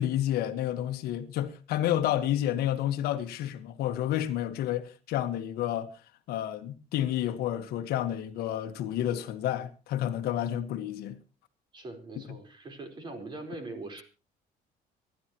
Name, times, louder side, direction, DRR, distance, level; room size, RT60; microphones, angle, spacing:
voice 1, 0.0-5.9 6.3-11.2 12.3-12.4, left 11 dB, 75° left, 1.6 m, -30 dB
voice 2, 11.7-14.0, right 2 dB, 30° right, 4.5 m, -41 dB
25.5 x 12.0 x 3.1 m
cardioid pair, 155°, 16 cm